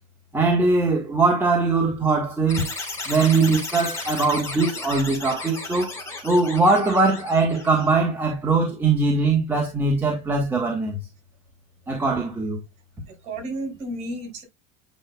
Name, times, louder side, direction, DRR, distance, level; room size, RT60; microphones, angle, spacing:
voice 1, 0.3-2.7 3.1-11.0 11.9-12.6, right 3 dB, 10° right, 1.4 m, -21 dB
sound 1, 2.5-7.9, left 3 dB, 15° left, 2.8 m, -34 dB
voice 2, 13.1-14.4, right 1 dB, 45° right, 5.3 m, -33 dB
8.9 x 5.4 x 2.3 m
supercardioid pair, 135°, 17 cm